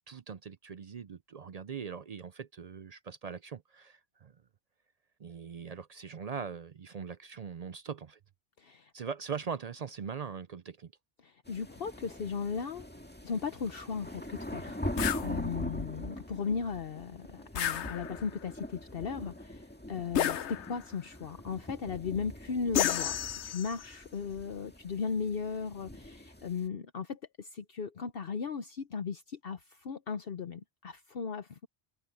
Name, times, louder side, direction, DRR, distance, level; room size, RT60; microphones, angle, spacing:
voice 1, 0.0-4.4 5.2-8.2 8.9-10.9, right 6 dB, 50° right, 0.5 m, -41 dB
voice 2, 8.6-8.9 11.2-12.9 13.2-31.7, left 5 dB, 60° left, 1.0 m, -37 dB
sound 1, 11.5-26.7, left 1 dB, 10° left, 2.0 m, -42 dB
sound 2, 15.0-15.3 17.5-18.4 20.1-20.9 22.7-23.9, left 10 dB, 85° left, 1.1 m, -31 dB
omnidirectional pair, 1.1 m